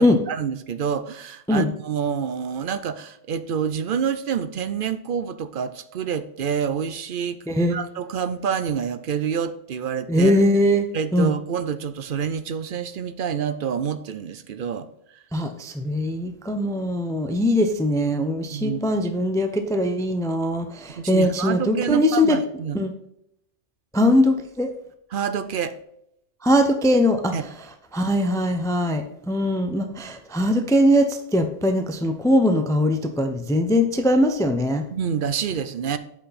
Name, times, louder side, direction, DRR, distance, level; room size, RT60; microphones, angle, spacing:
voice 1, 0.0-7.4 7.7-10.4 10.9-14.9 18.5-19.0 21.0-22.8 25.1-25.8 27.3-27.4 34.9-36.0, right 7 dB, 55° right, 12 dB, 0.7 m, -27 dB
voice 2, 10.1-10.9 11.1-11.3 15.3-22.4 22.7-22.9 23.9-24.7 26.4-27.3 27.9-34.8, left 1 dB, 5° left, 7 dB, 0.5 m, -21 dB
8.2 x 5.9 x 4.1 m, 0.77 s
omnidirectional pair, 1.3 m